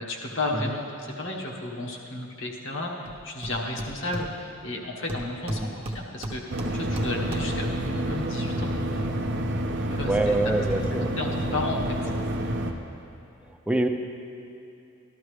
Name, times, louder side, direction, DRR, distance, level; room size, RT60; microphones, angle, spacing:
voice 1, 0.0-8.7 9.9-10.5 10.9-12.1, left 2 dB, 65° left, -1 dB, 1.3 m, -33 dB
Hammer, 3.1-3.2 3.4-4.7 5.1-7.7, right 1 dB, 30° right, 0.9 m, -36 dB
sound 1, 6.5-12.7, right 1 dB, 60° right, 0.7 m, -29 dB
voice 2, 9.8-11.1 13.7-13.9, right 2 dB, 5° right, 4 dB, 0.5 m, -25 dB
13.0 x 12.0 x 3.2 m, 2.7 s
head